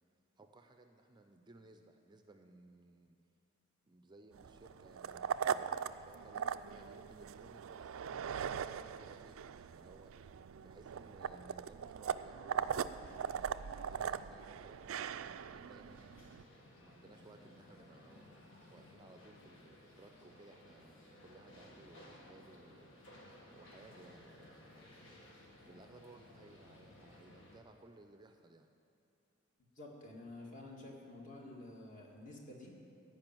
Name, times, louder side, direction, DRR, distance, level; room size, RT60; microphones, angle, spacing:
voice 1, 0.4-3.2 3.9-16.3 16.8-18.4 18.7-22.9 23.5-24.9 25.6-28.7, right 2 dB, 20° right, 6 dB, 0.5 m, -60 dB
sound 1, 4.3-16.4, right 7 dB, 75° right, 0.4 m, -40 dB
sound 2, 15.8-27.6, left 1 dB, 65° left, 1.8 m, -58 dB
voice 2, 29.8-32.7, left 2 dB, 40° left, -1 dB, 2.0 m, -50 dB
14.0 x 5.4 x 9.1 m, 2.8 s
head